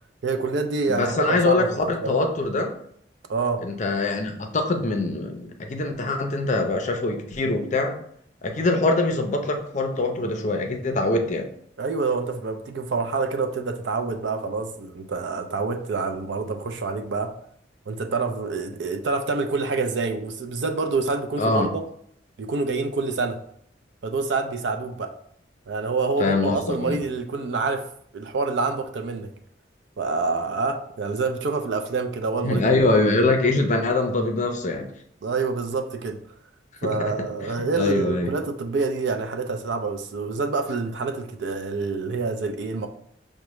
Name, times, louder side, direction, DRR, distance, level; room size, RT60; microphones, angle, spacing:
voice 1, 0.2-2.1 3.3-3.6 11.8-17.3 17.9-21.8 22.4-23.4 24.0-25.1 25.7-27.8 28.1-29.3 30.0-33.0 35.2-36.2 36.8-42.9, right 4 dB, 70° right, 5 dB, 0.5 m, -27 dB
voice 2, 0.9-2.7 3.6-8.0 8.4-11.5 21.4-21.7 26.2-27.0 32.4-34.9 36.9-37.1 37.4-37.5 37.8-38.3, left 2 dB, 40° left, 4 dB, 0.5 m, -23 dB
5.8 x 2.2 x 3.1 m, 0.67 s
head